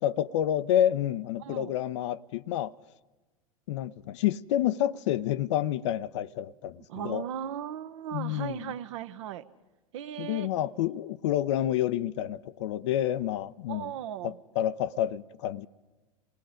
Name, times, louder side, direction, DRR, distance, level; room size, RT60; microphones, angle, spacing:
voice 1, 0.0-2.7 3.7-7.3 8.1-8.7 10.2-13.9 14.2-15.7, left 11 dB, 55° left, 0.6 m, -29 dB
voice 2, 1.4-1.8 6.9-9.4 9.9-10.5 13.7-14.4, right 10 dB, 55° right, 1.0 m, -37 dB
28.0 x 19.0 x 5.1 m
figure-of-eight pair, 90°, 18 cm